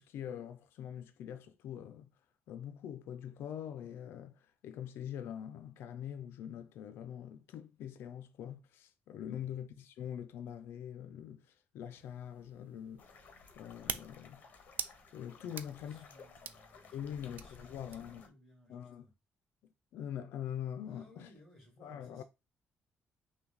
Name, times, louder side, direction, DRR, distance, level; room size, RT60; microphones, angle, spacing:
voice 1, 0.0-2.1 2.5-13.1 13.6-14.4 15.1-16.0 16.9-18.2 18.7-19.1 19.6-21.3 21.8-22.2, left 9 dB, 85° left, 0.4 m, -44 dB
voice 2, 9.1-9.5 15.4-19.1 20.8-22.2, equal, ahead, 2.4 m, -62 dB
sound 1, 12.0-18.3, right 8 dB, 50° right, 0.4 m, -47 dB
sound 2, 13.0-18.3, left 5 dB, 45° left, 0.8 m, -57 dB
5.8 x 2.2 x 3.9 m
cardioid pair, 175°, 4 cm